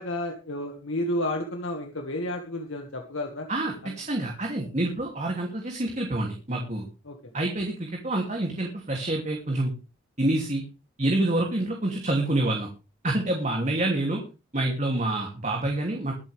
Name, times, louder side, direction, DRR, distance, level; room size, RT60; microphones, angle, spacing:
voice 1, 0.0-3.5 3.8-4.0 7.1-7.2, left 1 dB, 80° left, 3 dB, 2.0 m, -31 dB
voice 2, 3.5-6.9 7.3-9.7 10.2-10.6 11.0-12.7 13.0-14.2 14.5-16.1, right 1 dB, 35° right, 1 dB, 2.9 m, -27 dB
22.5 x 8.4 x 3.5 m, 0.31 s
head